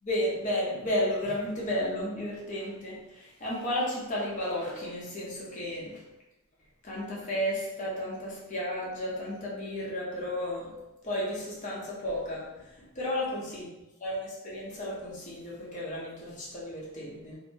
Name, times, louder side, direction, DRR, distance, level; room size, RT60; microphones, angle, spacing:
voice 1, 0.0-6.0 6.8-10.7 11.0-13.7 14.0-17.4, left 1 dB, 35° left, -6 dB, 0.7 m, -33 dB
2.6 x 2.1 x 2.7 m, 0.98 s
head